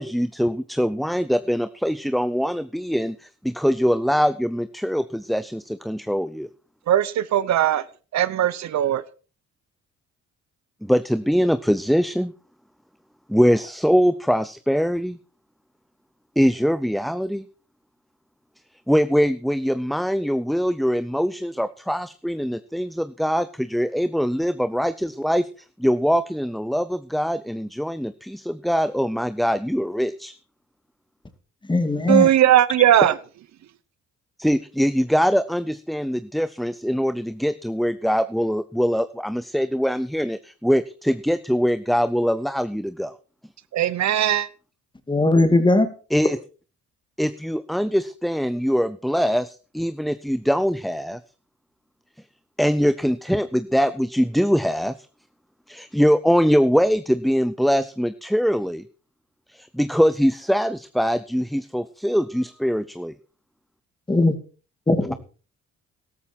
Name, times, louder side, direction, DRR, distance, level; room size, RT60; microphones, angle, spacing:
voice 1, 0.0-6.5 10.8-12.3 13.3-15.2 16.4-17.4 18.9-25.5 25.8-30.3 34.4-43.1 46.1-46.4 47.2-51.2 52.6-55.1 55.7-58.8 59.5-63.1, equal, ahead, 0.6 m, -22 dB
voice 2, 6.9-7.8 8.1-9.0 32.1-33.1 43.7-44.5, right 11 dB, 65° right, 0.8 m, -18 dB
voice 3, 31.7-32.3 45.1-45.9 64.1-64.3 64.9-65.1, left 2 dB, 15° left, 2.3 m, -18 dB
13.5 x 12.5 x 4.5 m
cardioid pair, 90°, 30 cm